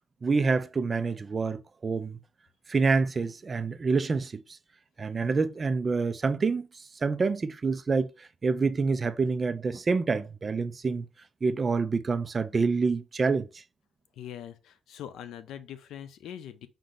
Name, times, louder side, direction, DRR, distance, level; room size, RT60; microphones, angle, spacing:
voice 1, 0.2-2.2 2.7-4.4 5.0-6.7 7.0-11.1 11.4-13.5, right 4 dB, 30° right, 0.3 m, -27 dB
voice 2, 14.2-16.7, left 10 dB, 85° left, 0.5 m, -42 dB
5.1 x 2.6 x 3.6 m
cardioid pair, 145°, 0 cm